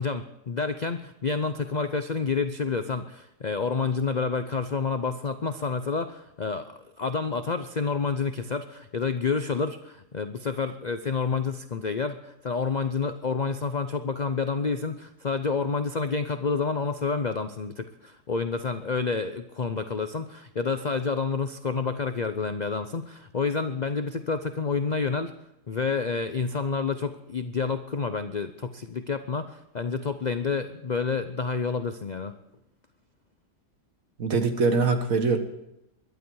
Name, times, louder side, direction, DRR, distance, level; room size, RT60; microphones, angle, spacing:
voice 1, 0.0-25.3 25.7-32.3, left 4 dB, 50° left, 9 dB, 0.5 m, -29 dB
voice 2, 34.2-35.4, right 4 dB, 60° right, 7 dB, 1.9 m, -23 dB
21.5 x 11.5 x 4.7 m, 0.87 s
omnidirectional pair, 1.7 m